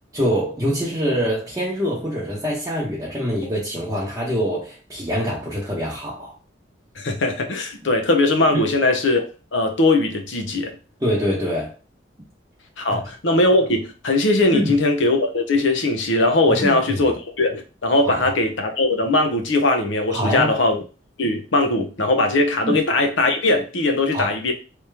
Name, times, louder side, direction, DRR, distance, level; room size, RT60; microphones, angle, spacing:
voice 1, 0.1-6.3 11.0-11.7 12.9-13.0 14.5-14.8 16.5-17.1 18.0-18.3 20.1-20.5 22.6-22.8 24.1-24.3, equal, 15° right, 0.9 m, -24 dB
voice 2, 7.0-10.8 12.8-20.8 21.2-24.5, left 2 dB, 80° left, 0.8 m, -20 dB
3.3 x 2.9 x 3.3 m
head